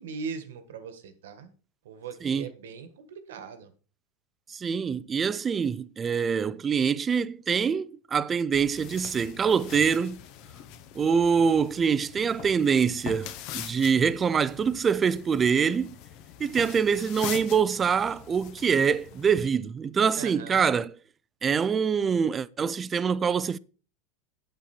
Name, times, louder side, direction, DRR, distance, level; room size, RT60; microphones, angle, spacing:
voice 1, 0.0-1.5 1.8-3.7 20.1-20.7, right 5 dB, 85° right, 1.6 m, -40 dB
voice 2, 2.2-2.5 4.5-10.2 10.9-15.9 16.4-21.0 21.4-23.6, right 6 dB, 20° right, 0.5 m, -25 dB
sound 1, 8.5-19.5, left 11 dB, 55° left, 1.1 m, -43 dB
8.9 x 8.3 x 4.4 m
supercardioid pair, 130°, 0 cm